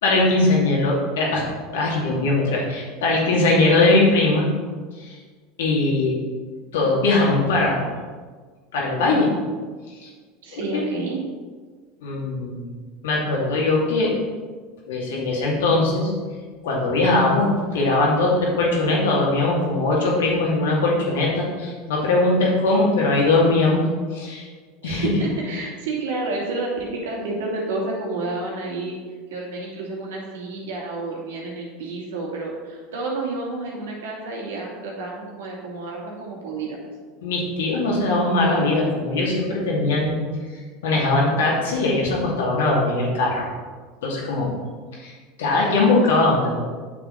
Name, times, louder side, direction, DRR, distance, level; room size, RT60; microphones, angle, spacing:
voice 1, 0.0-1.5 1.7-4.5 5.0-5.2 5.6-6.1 6.7-7.9 8.7-9.3 10.0-10.1 10.5-10.8 12.0-12.7 13.0-14.1 14.9-16.1 16.6-23.8 24.1-24.5 24.8-25.1 37.2-40.2 40.8-43.5 44.0-44.5 45.0-45.1 45.4-46.6, left 2 dB, 80° left, -3 dB, 2.6 m, -20 dB
voice 2, 10.4-11.2 24.8-29.0 29.3-36.9, right 3 dB, 85° right, -2 dB, 2.6 m, -30 dB
8.7 x 7.1 x 4.1 m, 1.5 s
hypercardioid pair, 90°, 0 cm